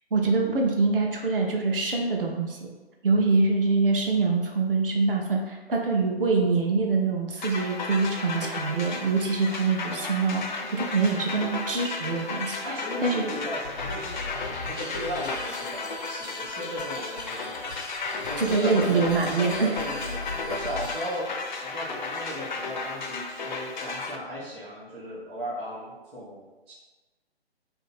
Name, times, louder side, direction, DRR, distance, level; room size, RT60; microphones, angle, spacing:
voice 1, 0.1-2.7 3.0-12.6 13.0-13.3 18.4-19.7, right 4 dB, 60° right, 0 dB, 0.7 m, -24 dB
sound 1, 7.4-24.2, left 3 dB, 50° left, 0.4 m, -34 dB
voice 2, 12.6-17.6 18.3-21.3 21.6-26.7, equal, 10° right, -10 dB, 0.5 m, -36 dB
sound 2, 13.6-21.2, left 3 dB, 90° left, 0.7 m, -40 dB
2.7 x 2.6 x 4.1 m, 1.2 s
figure-of-eight pair, 130°, 32 cm